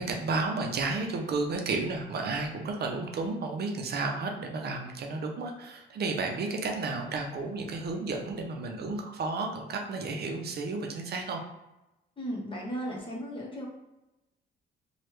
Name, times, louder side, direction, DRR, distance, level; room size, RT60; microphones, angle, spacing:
voice 1, 0.0-11.4, right 3 dB, 55° right, 2 dB, 0.5 m, -32 dB
voice 2, 12.2-13.7, equal, 25° left, -3 dB, 1.0 m, -35 dB
3.2 x 2.3 x 3.0 m, 0.96 s
cardioid pair, 90°, 20 cm